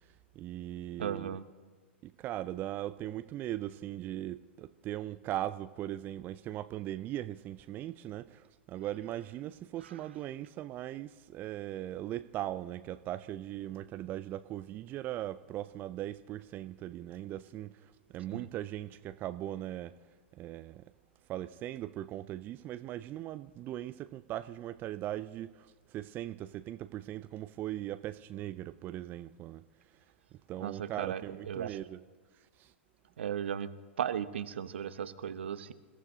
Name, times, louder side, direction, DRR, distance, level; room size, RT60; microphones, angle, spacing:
voice 1, 0.4-1.4 2.0-19.9 20.4-20.8 21.3-29.6 30.5-32.0 32.6-32.7, right 13 dB, 30° right, 0.4 m, -39 dB
voice 2, 1.0-1.4 18.3-18.5 30.6-31.8 33.2-33.7 34.0-35.7, right 9 dB, 65° right, 0.8 m, -36 dB
28.0 x 15.0 x 2.8 m
figure-of-eight pair, 100°, 6 cm